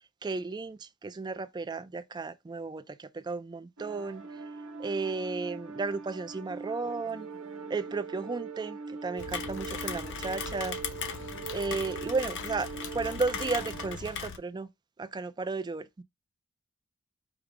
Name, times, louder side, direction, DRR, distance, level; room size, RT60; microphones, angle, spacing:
voice 1, 0.2-4.2 4.8-7.3 7.7-10.8 11.5-14.7 15.0-16.0, right 3 dB, 20° right, 0.3 m, -34 dB
sound 1, 3.8-14.0, right 4 dB, 70° right, 0.8 m, -41 dB
Rain, 9.2-14.4, left 6 dB, 55° left, 0.6 m, -38 dB
5.0 x 2.1 x 4.8 m
head